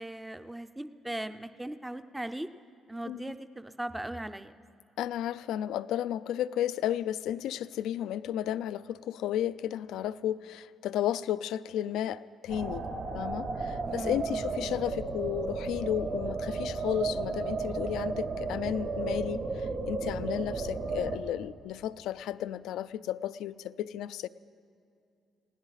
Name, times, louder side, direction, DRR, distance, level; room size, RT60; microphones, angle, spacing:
voice 1, 0.0-2.5 2.9-4.6 13.8-14.4, right 1 dB, 10° right, 10 dB, 0.5 m, -39 dB
voice 2, 5.0-12.9 13.1-24.3, left 11 dB, 85° left, 15 dB, 0.4 m, -33 dB
sound 1, 12.5-21.2, right 3 dB, 65° right, 2.3 m, -34 dB
21.0 x 16.5 x 4.0 m, 2.5 s
cardioid pair, 90°, 0 cm